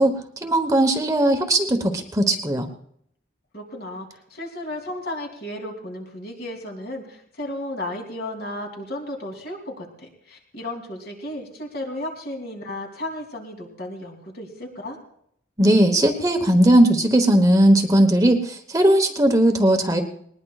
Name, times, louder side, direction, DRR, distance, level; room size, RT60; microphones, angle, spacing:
voice 1, 0.0-2.7 15.6-20.0, right 1 dB, 20° right, 5 dB, 1.1 m, -18 dB
voice 2, 3.5-15.0, left 1 dB, 55° left, 1 dB, 3.1 m, -34 dB
20.0 x 20.0 x 2.4 m, 0.69 s
head